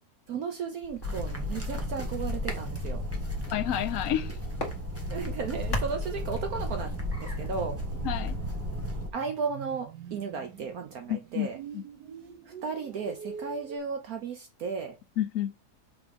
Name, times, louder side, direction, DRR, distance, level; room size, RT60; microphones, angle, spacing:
voice 1, 0.3-3.0 5.1-7.8 9.1-11.6 12.6-14.9, right 5 dB, 65° right, 1.3 m, -35 dB
sound 1, 0.8-7.5, left 1 dB, 45° left, 2.1 m, -42 dB
sound 2, 1.0-9.1, left 1 dB, 10° right, 1.4 m, -34 dB
sound 3, 3.2-13.8, right 7 dB, 90° right, 1.6 m, -46 dB
voice 2, 3.5-4.3 8.0-8.4 11.1-11.5 11.7-11.8 15.2-15.5, left 11 dB, 65° left, 0.9 m, -29 dB
5.9 x 3.5 x 5.2 m
omnidirectional pair, 1.7 m